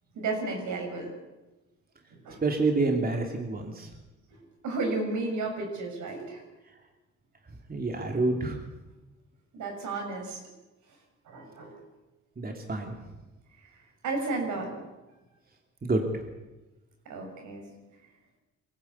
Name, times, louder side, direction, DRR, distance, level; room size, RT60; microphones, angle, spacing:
voice 1, 0.1-1.1 2.2-2.4 4.6-6.4 9.5-10.4 11.3-11.7 14.0-14.8 17.0-17.6, right 3 dB, 80° right, 2 dB, 6.7 m, -32 dB
voice 2, 2.4-3.9 7.7-8.6 12.4-12.9 15.8-16.1, right 3 dB, 30° right, 2 dB, 3.0 m, -27 dB
23.0 x 16.0 x 8.4 m, 1.1 s
cardioid pair, 90°, 30 cm